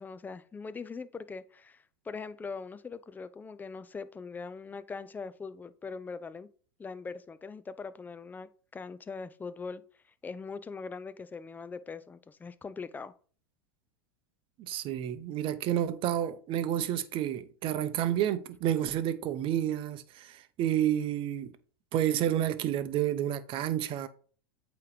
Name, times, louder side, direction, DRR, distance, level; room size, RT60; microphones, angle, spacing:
voice 1, 0.0-6.5 6.8-9.8 10.2-13.1, left 4 dB, 15° left, 0.5 m, -41 dB
voice 2, 14.6-21.5 21.9-24.1, right 11 dB, 40° right, 0.8 m, -30 dB
8.4 x 3.1 x 4.9 m
hypercardioid pair, 105°, 13 cm